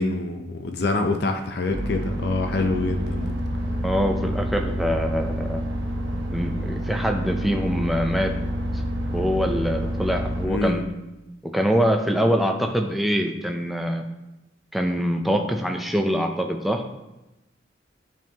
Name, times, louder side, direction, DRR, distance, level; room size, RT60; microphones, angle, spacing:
voice 1, 0.0-3.4 10.4-10.8, left 2 dB, 55° left, 5 dB, 0.5 m, -26 dB
sound 1, 1.7-10.5, equal, 75° right, 0.9 m, -28 dB
voice 2, 3.8-5.6 6.3-8.3 9.1-10.8 11.4-14.0 14.7-16.8, equal, ahead, 3 dB, 0.4 m, -24 dB
10.0 x 3.6 x 2.8 m, 0.99 s
head